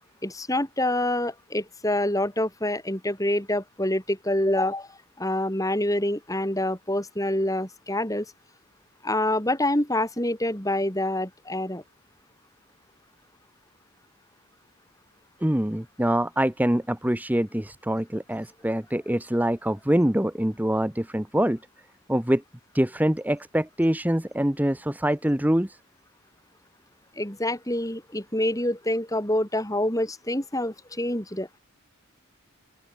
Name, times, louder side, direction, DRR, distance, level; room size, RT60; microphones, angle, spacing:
voice 1, 0.2-8.3 9.0-11.8 27.2-31.5, left 1 dB, 15° left, 4.8 m, -26 dB
voice 2, 15.4-21.6 22.1-22.4 22.7-25.8, right 1 dB, 5° right, 0.8 m, -24 dB
open air
head